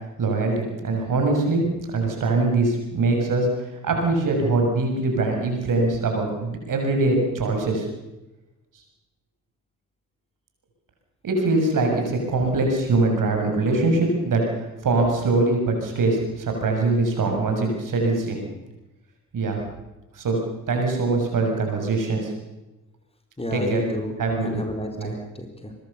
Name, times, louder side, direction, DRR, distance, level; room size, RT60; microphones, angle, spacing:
voice 1, 0.2-1.6 1.9-3.5 3.8-7.9 11.2-18.5 19.3-19.6 20.1-20.4 20.7-22.3 23.5-23.8 24.2-24.6 25.0-25.1, right 3 dB, 50° right, 2 dB, 6.8 m, -22 dB
voice 2, 23.4-24.1 24.4-25.7, left 1 dB, 15° left, 3 dB, 4.3 m, -31 dB
23.5 x 20.5 x 7.1 m, 1.0 s
figure-of-eight pair, 40°, 40 cm